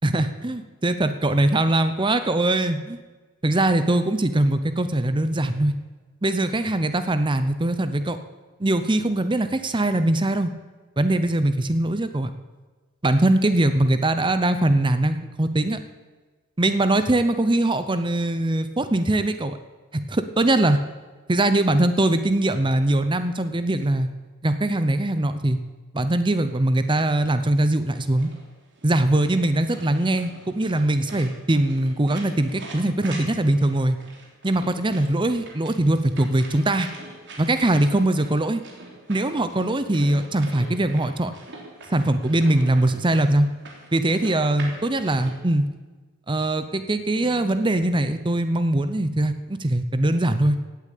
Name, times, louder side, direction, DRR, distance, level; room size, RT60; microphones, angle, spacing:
voice 1, 0.0-3.0 3.4-5.7 6.2-8.2 8.6-10.5 11.0-12.3 13.0-15.8 16.6-19.6 19.9-20.8 21.3-24.1 24.4-25.6 25.9-28.3 28.8-34.0 34.4-36.9 37.4-38.6 39.1-41.3 41.9-43.5 43.9-45.7 46.3-50.6, right 1 dB, 20° right, 10 dB, 0.7 m, -22 dB
sound 1, 27.9-45.4, right 2 dB, 55° right, 3.4 m, -43 dB
17.0 x 8.7 x 8.4 m, 1.3 s
head